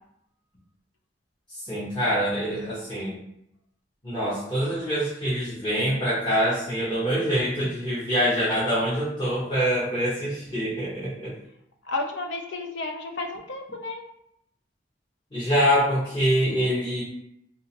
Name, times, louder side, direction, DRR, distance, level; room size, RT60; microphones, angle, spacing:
voice 1, 1.5-3.1 4.0-11.3 15.3-17.0, equal, 25° left, -10 dB, 1.0 m, -25 dB
voice 2, 11.8-14.0, left 2 dB, 70° left, 3 dB, 0.5 m, -32 dB
3.3 x 2.7 x 2.8 m, 0.77 s
head